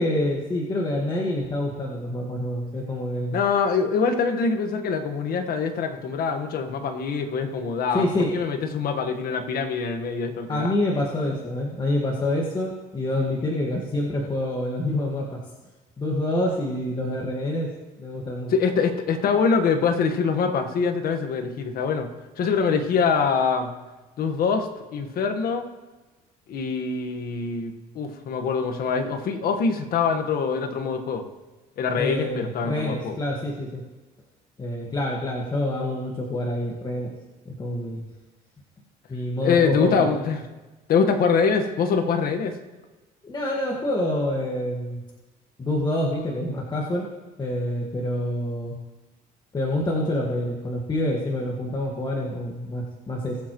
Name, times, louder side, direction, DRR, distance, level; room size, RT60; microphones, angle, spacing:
voice 1, 0.0-3.4 7.9-8.3 10.5-15.4 16.0-17.7 18.0-18.5 32.0-33.8 34.6-37.1 37.4-38.0 39.1-40.0 43.2-45.0 45.6-47.1 47.4-48.8 49.5-53.4, left 1 dB, 25° left, -2 dB, 1.7 m, -27 dB
voice 2, 3.3-8.1 8.3-10.8 18.5-22.1 22.4-23.7 24.2-25.7 26.5-31.3 31.8-33.2 39.4-40.4 40.9-42.5, left 5 dB, 60° left, 6 dB, 1.4 m, -24 dB
20.5 x 7.6 x 3.1 m, 1.2 s
cardioid pair, 110°, 17 cm